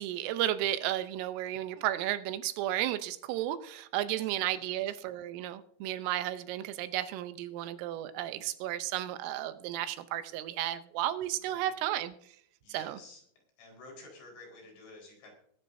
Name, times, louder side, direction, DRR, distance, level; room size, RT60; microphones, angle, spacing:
voice 1, 0.0-12.1 12.7-13.0, right 13 dB, 85° right, 11 dB, 3.4 m, -33 dB
voice 2, 4.1-5.0 11.4-11.7 12.6-13.2 13.6-15.3, left 2 dB, 65° left, 0 dB, 6.9 m, -52 dB
22.0 x 11.0 x 2.7 m, 0.66 s
omnidirectional pair, 5.7 m